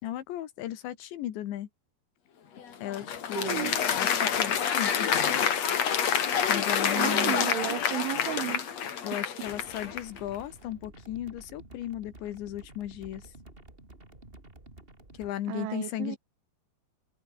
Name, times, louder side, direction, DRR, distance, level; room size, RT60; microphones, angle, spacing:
voice 1, 0.0-1.7 2.8-5.7 6.5-7.4 9.0-13.3 15.2-16.2, left 12 dB, 75° left, 3.9 m, -36 dB
Applause, 2.6-10.2, left 7 dB, 45° left, 2.8 m, -27 dB
voice 2, 3.4-3.7 7.0-8.6 15.5-16.2, right 15 dB, 85° right, 3.7 m, -33 dB
sound 1, 9.4-15.3, right 2 dB, 15° right, 3.8 m, -51 dB
omnidirectional pair, 5.3 m